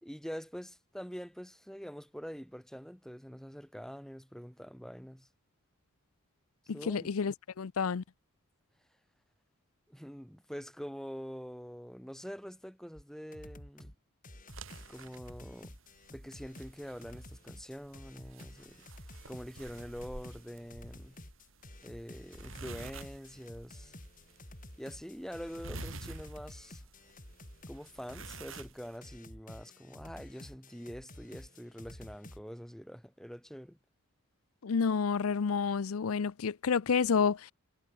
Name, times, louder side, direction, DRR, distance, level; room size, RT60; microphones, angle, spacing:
voice 1, 0.0-5.3 6.7-7.1 9.9-13.9 14.9-15.7 16.1-18.8 19.2-21.2 21.8-23.9 24.8-26.8 27.7-33.8, equal, ahead, 3.0 m, -45 dB
voice 2, 6.7-8.0 34.6-37.5, left 5 dB, 80° left, 0.5 m, -29 dB
sound 1, 13.0-13.1 13.3-14.0 14.2-32.4, left 1 dB, 40° left, 7.6 m, -51 dB
sound 2, 14.5-29.0, right 2 dB, 65° right, 6.0 m, -50 dB
head